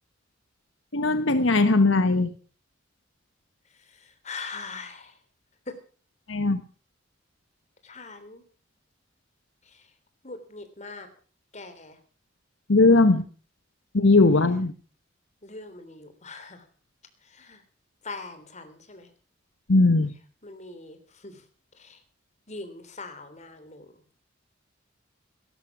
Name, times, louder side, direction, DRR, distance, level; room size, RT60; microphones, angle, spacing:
voice 1, 0.9-2.3 6.3-6.6 12.7-13.2 13.9-14.7 19.7-20.1, left 3 dB, 80° left, 10 dB, 1.2 m, -19 dB
voice 2, 3.9-5.1 5.7-5.8 7.8-8.4 9.7-9.8 10.2-11.1 11.5-12.0 15.4-16.6 17.2-17.6 18.0-19.1 20.4-21.4 21.8-22.0 22.5-23.9, left 3 dB, 35° left, 8 dB, 3.4 m, -41 dB
17.5 x 13.0 x 6.0 m, 0.40 s
head